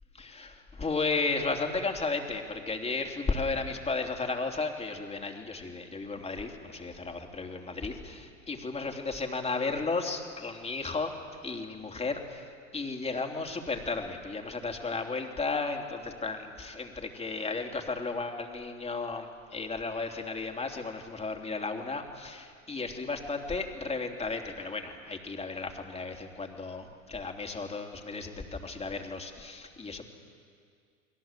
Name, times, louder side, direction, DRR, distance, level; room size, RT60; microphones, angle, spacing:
voice 1, 0.1-11.1 11.4-30.1, left 3 dB, 15° left, 3 dB, 3.4 m, -34 dB
30.0 x 22.0 x 7.6 m, 2.2 s
hypercardioid pair, 90°, 40 cm